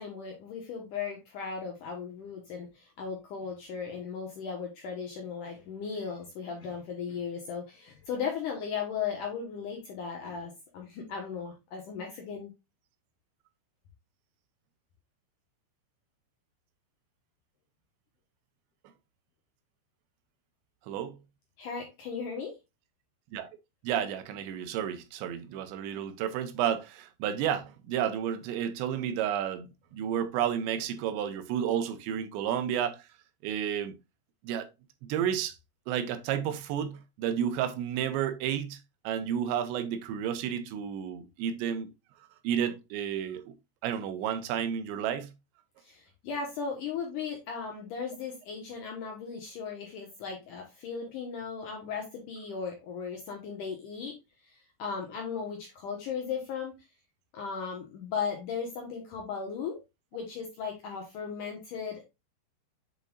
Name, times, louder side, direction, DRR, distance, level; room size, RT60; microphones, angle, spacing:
voice 1, 0.0-12.5 21.6-22.5 45.8-54.2 54.8-56.7 57.3-59.8 60.1-62.0, left 6 dB, 70° left, 2.1 m, -36 dB
voice 2, 20.9-21.2 23.3-23.5 23.8-33.0 33.4-34.0 34.4-34.7 35.0-35.5 35.9-38.8 39.0-41.9 42.4-43.5 43.8-45.3, right 9 dB, 85° right, 3.0 m, -31 dB
7.6 x 5.3 x 2.4 m
omnidirectional pair, 5.1 m